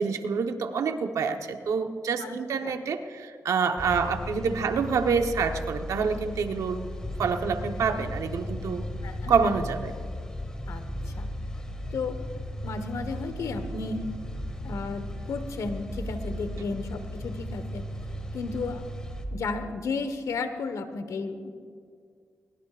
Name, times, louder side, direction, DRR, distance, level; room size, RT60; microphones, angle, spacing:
voice 1, 0.0-6.9 7.2-8.9 9.3-9.9, right 5 dB, 80° right, 6 dB, 1.1 m, -27 dB
sound 1, 3.8-19.2, left 1 dB, 15° left, 2.1 m, -36 dB
voice 2, 9.0-9.4 10.7-11.3 11.9-12.2 12.6-14.1 14.6-17.8 18.3-18.8 19.3-21.5, left 4 dB, 80° left, 9 dB, 1.3 m, -33 dB
22.0 x 21.5 x 2.5 m, 2.2 s
cardioid pair, 75°, 6 cm